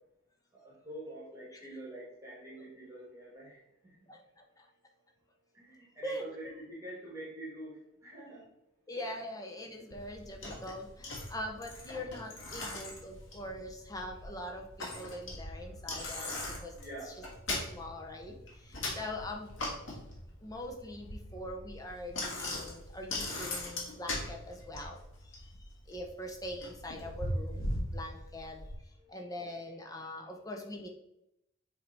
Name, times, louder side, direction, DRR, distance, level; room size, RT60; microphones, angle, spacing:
voice 1, 0.6-4.1 5.5-8.4 12.6-12.7 16.7-17.2 29.0-29.5 30.3-30.4, right 1 dB, 15° right, -6 dB, 1.9 m, -46 dB
voice 2, 4.1-4.7 6.0-6.2 8.9-16.3 16.6-16.7 17.0-17.1 17.5-19.5 20.4-25.0 25.3-28.6 29.1-30.9, left 1 dB, 15° left, 2 dB, 0.8 m, -43 dB
Bicycle, 9.9-28.8, left 1 dB, 65° left, 1.7 m, -40 dB
7.3 x 3.4 x 4.0 m, 0.82 s
head